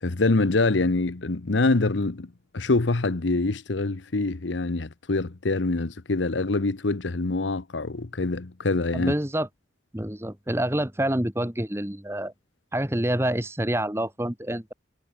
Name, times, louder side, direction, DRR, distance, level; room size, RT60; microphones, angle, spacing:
voice 1, 0.0-9.1, left 3 dB, 85° left, 1.0 m, -25 dB
voice 2, 8.9-9.5 9.9-12.3 12.7-14.7, right 1 dB, 15° right, 1.4 m, -27 dB
head